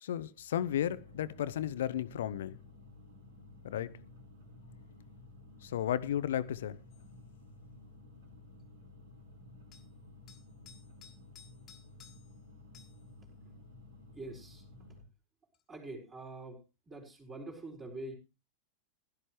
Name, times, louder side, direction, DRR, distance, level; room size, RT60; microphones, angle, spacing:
voice 1, 0.0-2.6 3.6-3.9 5.6-6.8, left 10 dB, 60° left, 0.8 m, -34 dB
sound 1, 0.6-15.0, left 2 dB, 60° right, 3.7 m, -54 dB
sound 2, 6.9-7.1 9.7-9.9 10.3-12.4 12.7-13.0 15.5-15.6, left 8 dB, 30° left, 1.7 m, -58 dB
voice 2, 14.1-14.7 15.7-18.1, right 2 dB, 20° right, 4.2 m, -45 dB
16.5 x 12.5 x 3.1 m
figure-of-eight pair, 90°, 0 cm